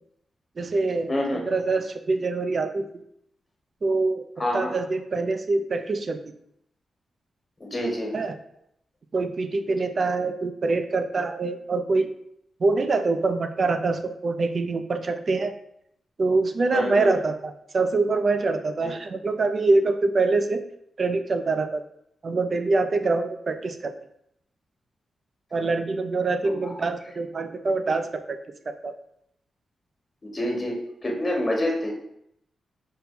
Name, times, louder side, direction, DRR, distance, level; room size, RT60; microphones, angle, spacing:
voice 1, 0.6-2.9 3.8-4.2 4.5-6.2 8.1-8.4 9.1-12.1 12.6-15.5 16.2-20.6 21.0-21.8 22.2-23.9 25.5-28.4 28.7-28.9, right 3 dB, 50° right, 8 dB, 0.4 m, -25 dB
voice 2, 1.1-1.4 4.4-4.7 7.6-8.1 16.7-17.1 30.2-30.7 31.0-31.9, left 1 dB, 30° left, -1 dB, 1.4 m, -26 dB
5.4 x 2.2 x 4.2 m, 0.74 s
cardioid pair, 75°, 0 cm